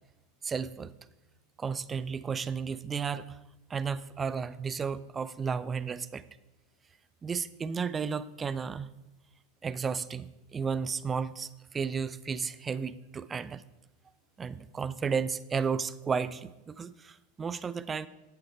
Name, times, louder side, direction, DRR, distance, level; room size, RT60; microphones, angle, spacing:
voice 1, 0.4-0.9 1.6-3.4 3.7-6.2 7.2-8.9 9.6-13.6 14.4-18.1, right 6 dB, 20° right, 16 dB, 0.4 m, -33 dB
8.6 x 7.9 x 4.5 m, 0.98 s
hypercardioid pair, 105°, 0 cm